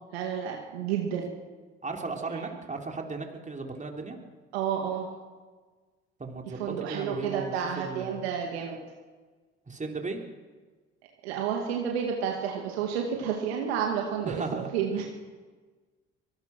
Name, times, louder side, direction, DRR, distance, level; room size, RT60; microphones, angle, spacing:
voice 1, 0.1-1.3 2.3-2.5 4.5-5.1 6.6-8.8 11.2-15.1, right 7 dB, 85° right, 1 dB, 2.3 m, -30 dB
voice 2, 1.8-4.2 6.2-8.3 9.7-10.2 14.2-14.7, right 3 dB, 25° right, 3 dB, 3.7 m, -36 dB
24.5 x 18.0 x 6.2 m, 1.4 s
hypercardioid pair, 55°, 31 cm